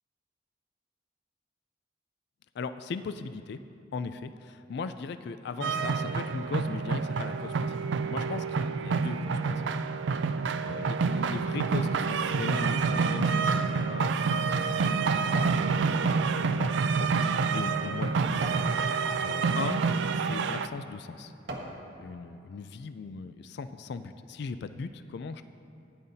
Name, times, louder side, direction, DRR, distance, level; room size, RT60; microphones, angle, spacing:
voice 1, 2.5-3.6 3.9-9.8 10.2-18.6 19.2-19.8 20.1-21.3 22.0-25.4, left 4 dB, 60° left, 10 dB, 0.3 m, -39 dB
sound 1, 5.6-20.7, right 5 dB, 65° right, 0.4 m, -28 dB
sound 2, 15.2-15.7 16.1-18.7 19.3-19.6 20.3-20.4 20.9-21.8 22.3-22.4, right 1 dB, 85° right, 1.4 m, -43 dB
16.5 x 10.5 x 2.7 m, 2.6 s
head